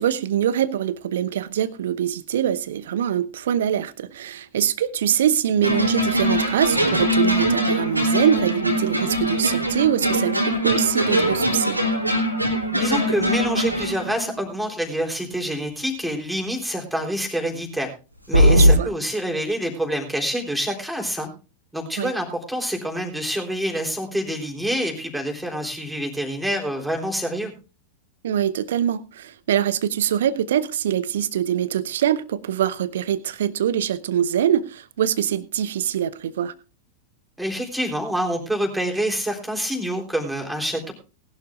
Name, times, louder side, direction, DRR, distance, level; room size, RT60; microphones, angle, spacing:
voice 1, 0.0-11.8 18.5-18.9 22.0-22.1 28.2-36.5, right 10 dB, 60° right, 0.9 m, -23 dB
sound 1, 5.6-14.4 18.3-18.7, equal, 90° right, 3.2 m, -21 dB
voice 2, 12.7-17.9 18.3-21.3 21.7-27.5 37.4-40.9, equal, 5° right, 3.7 m, -27 dB
19.5 x 11.5 x 2.5 m
figure-of-eight pair, 90°, 0 cm